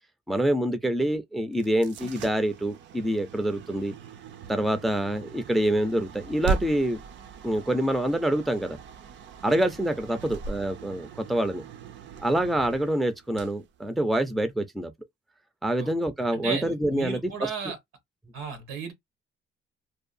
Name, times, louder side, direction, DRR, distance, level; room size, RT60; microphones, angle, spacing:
voice 1, 0.3-3.9 4.5-7.0 7.4-8.8 9.4-11.6 12.2-14.9 15.6-17.5, right 1 dB, ahead, 0.3 m, -26 dB
sound 1, 1.5-14.5, right 5 dB, 65° right, 0.4 m, -39 dB
voice 2, 16.3-17.8 18.3-18.9, right 6 dB, 90° right, 1.1 m, -34 dB
2.7 x 2.2 x 2.4 m
cardioid pair, 155°, 20 cm